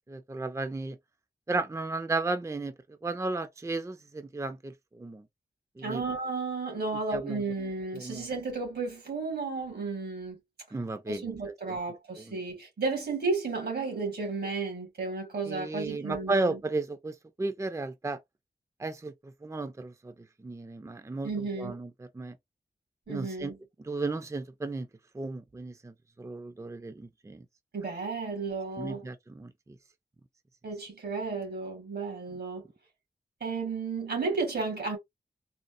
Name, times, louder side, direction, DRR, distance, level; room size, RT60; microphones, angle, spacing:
voice 1, 0.1-1.0 1.5-2.7 3.0-5.2 5.8-6.0 7.1-7.4 7.9-8.3 10.7-11.3 11.7-11.8 12.2-12.4 15.5-18.2 18.8-20.1 20.4-21.3 21.6-22.4 23.1-23.5 23.8-24.9 25.1-27.4 28.8-29.8, right 3 dB, 20° right, 0.5 m, -34 dB
voice 2, 5.8-10.4 11.1-16.6 21.2-21.7 23.1-23.6 27.7-29.1 30.6-32.6 33.4-35.0, right 4 dB, 90° right, 2.2 m, -33 dB
4.2 x 2.1 x 2.5 m
wide cardioid pair, 60°, 16 cm